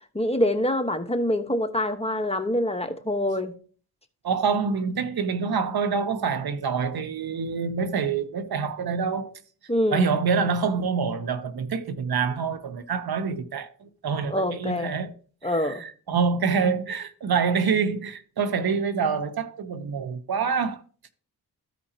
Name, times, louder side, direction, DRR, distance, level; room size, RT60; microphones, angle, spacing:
voice 1, 0.1-3.5 9.7-10.1 14.3-14.9 15.4-15.8, left 1 dB, 15° left, 1.2 m, -25 dB
voice 2, 4.2-9.3 9.9-15.1 15.4-20.8, right 5 dB, 65° right, 1.0 m, -26 dB
14.0 x 5.0 x 2.9 m
cardioid pair, 60°, 40 cm